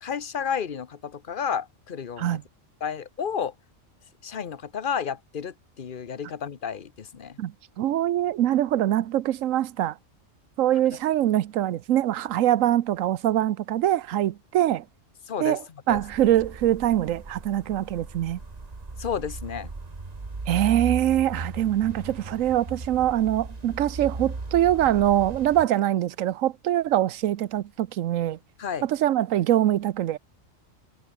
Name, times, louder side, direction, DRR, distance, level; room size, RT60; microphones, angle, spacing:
voice 1, 0.0-2.4 2.8-3.5 4.2-7.4 15.3-15.6 15.9-16.0 19.0-19.7 28.6-28.9, left 7 dB, 45° left, 1.1 m, -31 dB
voice 2, 7.4-10.0 10.6-14.8 15.4-18.4 20.5-28.4 28.8-30.2, right 12 dB, 85° right, 1.1 m, -23 dB
sound 1, 15.9-25.6, right 3 dB, 30° right, 1.8 m, -37 dB
omnidirectional pair, 1.3 m